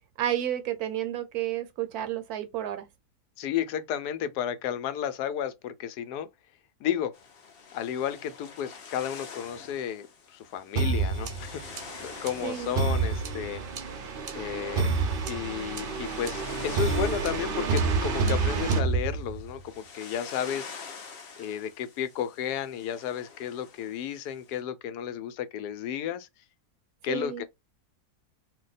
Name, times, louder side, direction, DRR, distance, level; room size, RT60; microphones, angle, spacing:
voice 1, 0.2-2.9 12.4-12.7 27.1-27.4, right 11 dB, 75° right, 1.1 m, -31 dB
voice 2, 3.4-6.3 6.8-7.1 7.7-13.6 14.3-14.9 15.3-20.7 21.4-26.3 27.0-27.4, left 9 dB, 90° left, 1.1 m, -33 dB
sound 1, 7.1-24.6, left 5 dB, 55° left, 0.7 m, -47 dB
sound 2, 10.8-19.6, right 4 dB, 55° right, 0.6 m, -29 dB
2.7 x 2.2 x 3.9 m
omnidirectional pair, 1.6 m